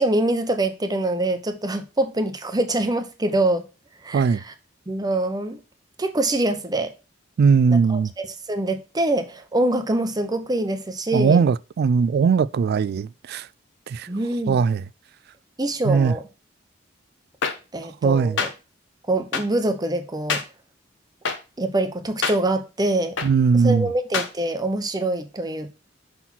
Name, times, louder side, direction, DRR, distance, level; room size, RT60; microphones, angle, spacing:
voice 1, 0.0-3.6 4.0-4.5 4.9-5.6 6.0-6.9 7.7-11.4 14.1-14.6 15.6-16.2 17.7-18.5 19.1-20.4 21.6-23.1 23.6-25.7, right 1 dB, 20° right, 0.8 m, -24 dB
voice 2, 7.4-8.1 11.1-13.5 13.9-14.1 14.5-14.8 15.8-16.1 18.0-18.4 23.2-23.9, right 5 dB, 55° right, 0.3 m, -19 dB
sound 1, 17.4-17.5 18.4-18.5 19.3-19.4 20.3-20.4 21.2-21.4 22.2-22.3 23.2-23.3 24.1-24.3, left 5 dB, 70° left, 1.0 m, -24 dB
5.8 x 4.1 x 5.8 m
head